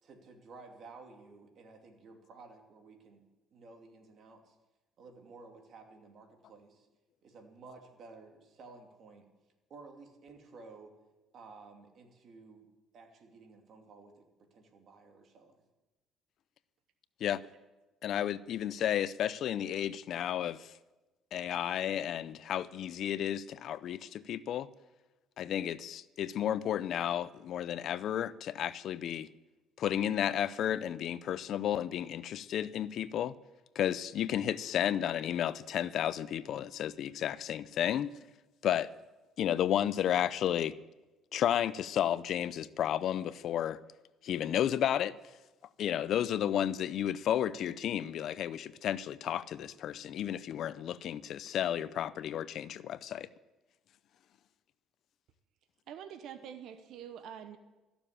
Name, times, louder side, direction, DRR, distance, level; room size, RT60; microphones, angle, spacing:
voice 1, 0.0-3.2 3.5-4.6 5.0-6.9 7.2-9.3 9.7-10.9 11.3-12.7 12.9-15.6, right 3 dB, 55° right, 2.5 m, -54 dB
voice 2, 18.0-20.7 21.3-24.7 25.4-29.3 29.8-33.4 33.8-38.1 38.6-38.9 39.4-40.7 41.3-43.8 44.2-45.2 45.8-53.3, left 10 dB, 60° left, 0.5 m, -32 dB
voice 3, 55.9-57.6, right 9 dB, 70° right, 0.9 m, -45 dB
14.0 x 7.1 x 10.0 m
cardioid pair, 110°, 0 cm